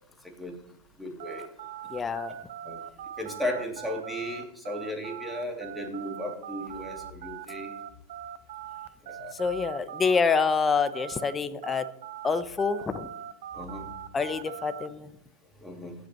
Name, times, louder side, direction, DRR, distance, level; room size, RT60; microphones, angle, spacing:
voice 1, 0.2-0.6 1.0-1.5 2.6-2.8 3.2-7.7 9.0-9.3 13.5-13.9 15.6-15.9, left 1 dB, ahead, 1 dB, 2.7 m, -35 dB
sound 1, 1.2-11.3 11.6-14.9, right 10 dB, 65° right, 0.6 m, -41 dB
voice 2, 1.9-2.3 9.4-11.8 12.2-13.1 14.1-15.1, left 5 dB, 20° left, 12 dB, 0.8 m, -26 dB
16.5 x 7.9 x 3.1 m, 0.82 s
hypercardioid pair, 115°, 0 cm